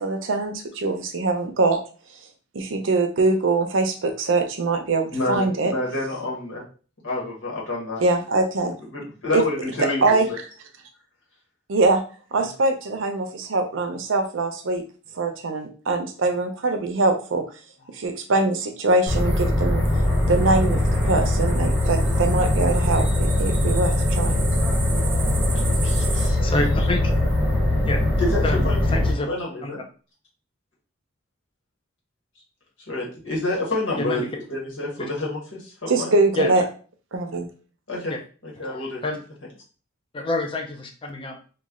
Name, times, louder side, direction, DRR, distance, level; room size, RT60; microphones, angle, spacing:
voice 1, 0.0-1.8 2.5-5.7 8.0-8.8 9.3-9.4 10.0-10.3 11.7-12.0 12.3-14.8 15.2-17.4 17.9-19.8 20.3-24.4 35.9-36.6 37.1-37.5, right 3 dB, 75° right, 6 dB, 0.6 m, -23 dB
voice 2, 5.1-6.6 7.0-8.0 8.9-10.4 25.5-26.4 26.7-26.9 28.2-29.8 32.9-36.1 37.9-38.1 38.4-39.0, left 2 dB, 75° left, -3 dB, 1.4 m, -29 dB
sound 1, 19.1-29.1, left 1 dB, 5° right, 0.9 m, -21 dB
sound 2, 19.9-26.3, right 5 dB, 25° right, 0.5 m, -35 dB
voice 3, 26.1-27.1 27.8-28.0 28.4-29.3 29.6-29.7 34.0-34.3 36.4-36.5 38.6-39.2 40.1-41.4, left 2 dB, 25° left, 3 dB, 0.5 m, -28 dB
3.1 x 2.3 x 3.6 m, 0.39 s
head